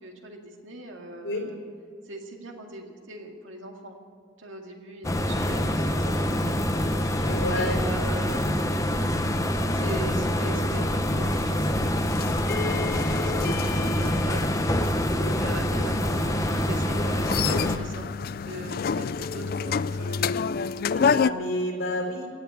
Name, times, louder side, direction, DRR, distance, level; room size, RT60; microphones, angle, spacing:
voice 1, 0.0-1.6 2.0-4.0 4.4-7.0 7.5-9.2 9.7-18.1 18.4-20.3 21.0-21.2, right 1 dB, 85° right, 2 dB, 2.2 m, -40 dB
sound 1, 5.0-17.8, equal, 15° left, 0.8 m, -25 dB
voice 2, 6.9-7.8 15.1-15.4 20.9-22.3, left 1 dB, 85° left, 2 dB, 3.7 m, -30 dB
sound 2, 11.3-21.3, left 6 dB, 50° left, 0.3 m, -30 dB
17.5 x 8.6 x 9.3 m, 2.1 s
head